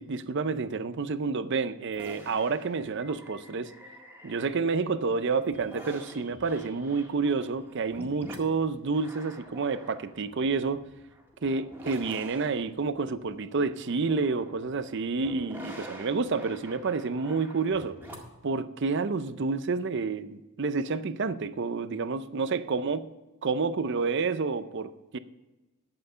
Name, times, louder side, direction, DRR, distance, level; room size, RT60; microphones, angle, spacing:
voice 1, 0.0-3.7 4.2-10.8 11.4-18.0 18.4-23.1 23.4-25.2, right 4 dB, 55° right, 13 dB, 0.6 m, -29 dB
sound 1, 1.9-4.9 5.3-18.4, equal, 10° right, 1.8 m, -47 dB
11.5 x 7.7 x 5.6 m, 1.1 s
head